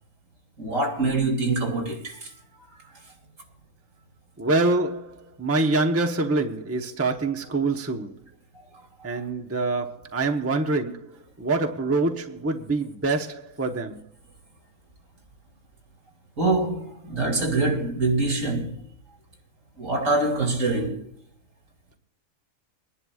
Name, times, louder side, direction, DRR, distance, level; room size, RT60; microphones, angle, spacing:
voice 1, 0.6-2.2 16.4-18.8 19.8-21.1, right 2 dB, 70° right, 3.4 m, -24 dB
voice 2, 4.4-8.2 9.0-11.1 11.4-14.0, right 3 dB, 10° right, 0.9 m, -25 dB
25.0 x 11.0 x 2.4 m
omnidirectional pair, 1.4 m